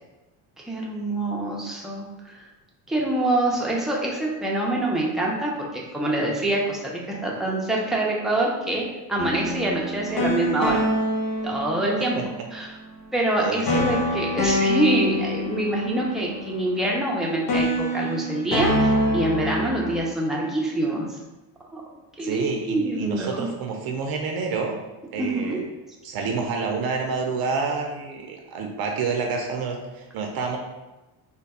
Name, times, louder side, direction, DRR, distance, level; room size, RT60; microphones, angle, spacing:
voice 1, 0.6-2.5 2.9-10.8 11.4-12.2 12.5-12.7 13.1-21.0 21.7-21.8 22.2-23.5 25.2-25.7, right 1 dB, ahead, -3 dB, 0.5 m, -25 dB
sound 1, 9.2-12.3 13.7-17.2 17.5-20.0, equal, 60° left, 1.1 m, -25 dB
voice 2, 13.4-13.9 22.2-24.8 25.1-25.6 26.0-30.6, right 4 dB, 50° right, 2 dB, 0.5 m, -28 dB
3.3 x 2.2 x 4.1 m, 1.1 s
cardioid pair, 120°, 47 cm